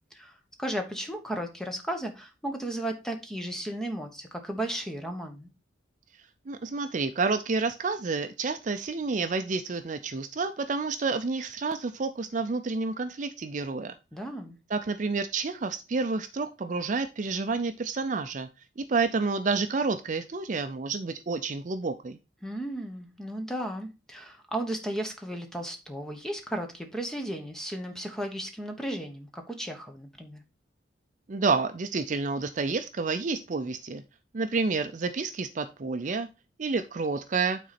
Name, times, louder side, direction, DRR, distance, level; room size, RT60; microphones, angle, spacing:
voice 1, 0.6-5.5 14.1-14.6 22.4-30.4, right 1 dB, 5° left, 1.0 m, -35 dB
voice 2, 6.5-13.9 14.7-18.5 18.8-22.2 31.3-34.0 34.3-36.3 36.6-37.6, right 4 dB, 40° right, 0.4 m, -29 dB
9.2 x 3.9 x 4.2 m
head